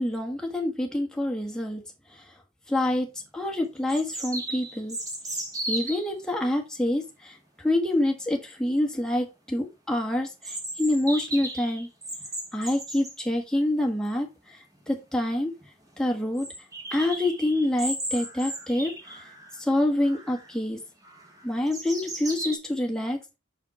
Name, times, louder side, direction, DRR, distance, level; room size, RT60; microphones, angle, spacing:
voice 1, 0.0-1.8 2.1-2.2 2.7-5.0 5.7-11.9 12.5-14.6 14.9-15.5 16.0-16.5 16.9-19.2 19.6-20.8 21.4-23.4, left 1 dB, 5° left, 1 dB, 1.5 m, -27 dB
sound 1, 2.9-3.0 3.9-6.1 10.4-13.2 14.8-14.9 15.2-15.3 15.6-15.7 16.4-19.6 20.0-20.5 21.0-22.6, right 1 dB, 20° right, 2.0 m, -36 dB
6.3 x 5.5 x 4.4 m, 0.25 s
head